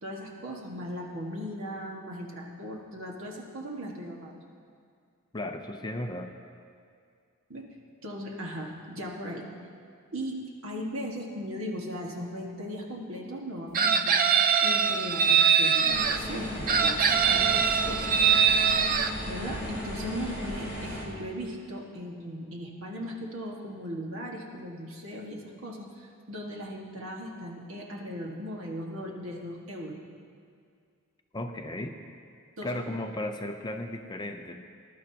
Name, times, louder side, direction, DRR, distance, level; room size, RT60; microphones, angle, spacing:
voice 1, 0.0-4.4 7.5-7.6 8.0-9.4 10.1-14.2 14.6-18.2 19.3-30.0 32.6-32.8, equal, 65° right, -1 dB, 1.7 m, -38 dB
voice 2, 5.3-6.3 31.3-32.0 32.6-34.6, left 1 dB, 20° left, 5 dB, 0.5 m, -35 dB
Chicken rooster, 13.7-16.2 16.7-19.1, right 6 dB, 40° right, 0.4 m, -23 dB
sound 1, 15.9-21.0, equal, 10° right, 2.7 m, -36 dB
20.5 x 11.5 x 2.9 m, 2.3 s
head